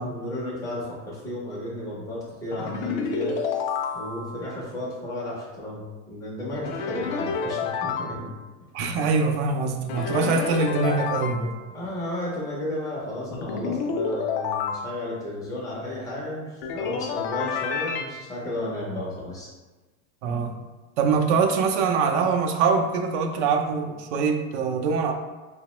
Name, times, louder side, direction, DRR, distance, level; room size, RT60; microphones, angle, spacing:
voice 1, 0.0-3.3 3.9-8.4 11.7-19.5, left 1 dB, 10° left, -5 dB, 0.4 m, -33 dB
sound 1, 2.5-4.4 6.6-8.2 9.9-11.5 13.3-14.8 16.6-18.1, left 5 dB, 65° left, 0.5 m, -29 dB
voice 2, 8.7-11.5 20.2-20.5 21.0-25.1, right 5 dB, 80° right, 4 dB, 0.5 m, -23 dB
2.9 x 2.0 x 2.9 m, 1.2 s
supercardioid pair, 165°, 34 cm